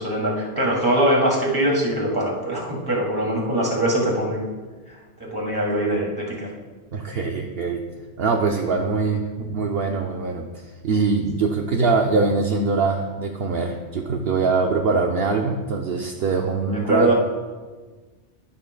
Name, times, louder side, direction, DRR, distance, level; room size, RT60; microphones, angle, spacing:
voice 1, 0.0-4.5 4.9-6.5 14.9-15.0 16.7-17.1, right 1 dB, 20° right, -3 dB, 2.3 m, -23 dB
voice 2, 6.9-7.8 8.2-17.1, right 4 dB, 65° right, 2 dB, 0.9 m, -23 dB
11.5 x 11.5 x 2.2 m, 1.3 s
omnidirectional pair, 1.1 m